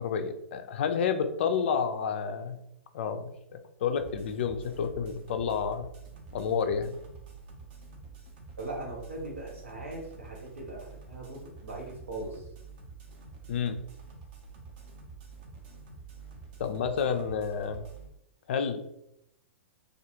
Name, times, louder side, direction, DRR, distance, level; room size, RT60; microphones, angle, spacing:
voice 1, 0.0-2.6 2.9-5.9 6.3-7.0 13.5-13.8 16.6-17.9 18.5-18.8, left 6 dB, 60° left, 8 dB, 0.3 m, -30 dB
sound 1, 4.0-18.1, right 4 dB, 45° right, 0.6 m, -48 dB
voice 2, 8.6-12.4, right 2 dB, 85° right, -2 dB, 0.9 m, -40 dB
2.3 x 2.3 x 2.9 m, 0.79 s
figure-of-eight pair, 110°, 7 cm